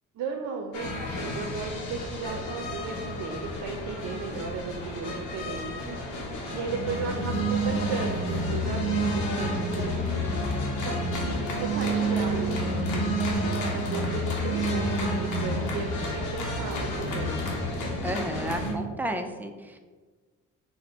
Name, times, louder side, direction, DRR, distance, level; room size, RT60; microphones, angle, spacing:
voice 1, 0.1-17.4, right 5 dB, 70° right, 1 dB, 0.5 m, -36 dB
sound 1, 0.7-18.7, equal, 85° left, 0.9 m, -29 dB
voice 2, 18.0-19.8, right 1 dB, 5° right, 5 dB, 0.4 m, -32 dB
4.1 x 2.1 x 4.1 m, 1.4 s
cardioid pair, 90°, 30 cm